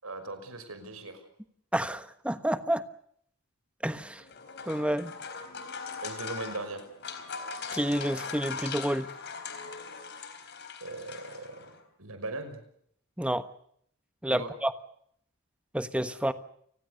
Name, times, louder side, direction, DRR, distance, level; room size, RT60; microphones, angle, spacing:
voice 1, 0.0-1.2 6.0-6.9 10.8-12.6 14.3-14.5, right 2 dB, 80° right, 9 dB, 5.7 m, -39 dB
voice 2, 1.7-2.8 3.8-4.2 4.7-5.1 7.7-9.1 13.2-13.5 14.2-14.7 15.7-16.3, right 1 dB, 5° right, 11 dB, 1.3 m, -29 dB
sound 1, 4.2-11.8, left 5 dB, 55° left, 4.1 m, -40 dB
29.5 x 20.0 x 6.7 m, 0.68 s
head